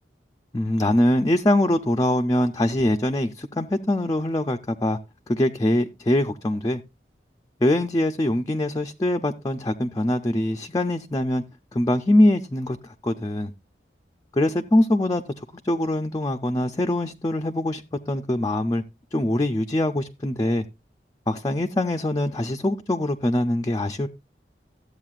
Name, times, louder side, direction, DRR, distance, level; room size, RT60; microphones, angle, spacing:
voice 1, 0.5-5.0 5.3-6.8 7.6-11.4 11.7-13.5 14.3-15.2 15.6-18.8 19.1-20.6 21.3-24.1, left 1 dB, 20° left, 0.5 m, -23 dB
14.0 x 8.2 x 2.4 m
head